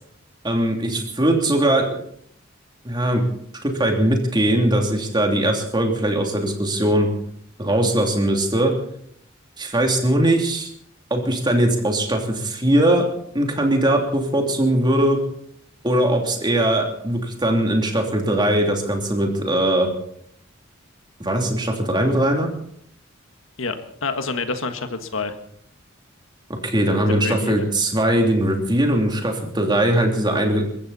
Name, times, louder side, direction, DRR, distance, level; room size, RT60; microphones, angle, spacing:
voice 1, 0.4-2.0 2.8-3.3 3.6-7.1 7.6-8.7 9.6-10.7 11.1-13.0 13.3-15.2 15.8-19.9 21.2-22.5 26.6-30.7, right 1 dB, 20° right, 2 dB, 3.0 m, -20 dB
voice 2, 24.0-25.4 27.1-27.5, left 3 dB, 80° left, 8 dB, 1.7 m, -27 dB
22.5 x 15.0 x 4.3 m, 0.67 s
head